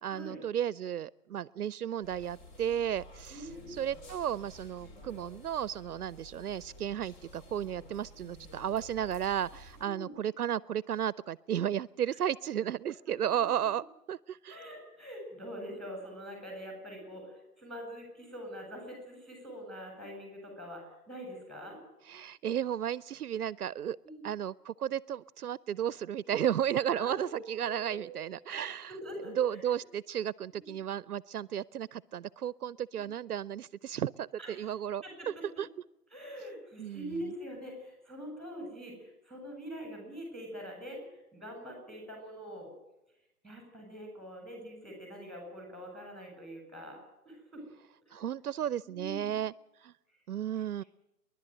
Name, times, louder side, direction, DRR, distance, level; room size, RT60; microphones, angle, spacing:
voice 1, 0.0-14.6 22.1-24.0 24.2-28.9 29.4-35.0 35.6-35.7 36.8-37.1 48.1-49.5 49.8-49.9 50.3-50.8, right 10 dB, 70° right, 21 dB, 0.7 m, -34 dB
sound 1, 2.0-9.9, left 1 dB, 30° left, 4.2 m, -52 dB
voice 2, 3.3-3.8 9.8-10.1 14.4-21.8 24.0-24.3 26.8-28.2 28.5-28.6 28.8-29.8 30.6-30.7 33.0-33.1 34.4-34.7 35.0-35.4 36.1-42.7 43.4-47.6 48.1-48.2 48.8-49.4 50.8-50.9, equal, ahead, 3 dB, 7.8 m, -44 dB
29.5 x 11.5 x 7.9 m, 0.89 s
hypercardioid pair, 150°, 46 cm